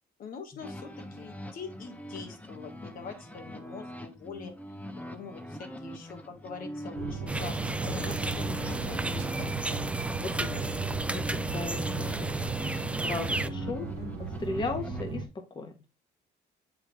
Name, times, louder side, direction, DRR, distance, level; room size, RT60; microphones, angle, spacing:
voice 1, 0.2-4.6 5.0-9.8 14.0-14.4, left 5 dB, 55° left, 5 dB, 1.5 m, -44 dB
sound 1, 0.6-15.0, equal, 10° left, 1.0 m, -43 dB
sound 2, 6.9-15.3, right 5 dB, 75° right, 1.2 m, -37 dB
sound 3, 7.3-13.5, right 2 dB, 5° right, 0.4 m, -33 dB
voice 2, 10.1-10.8 11.1-12.7 13.0-13.9 14.4-15.7, left 3 dB, 25° left, 4 dB, 1.4 m, -36 dB
7.6 x 4.8 x 3.3 m, 0.27 s
cardioid pair, 110°, 17 cm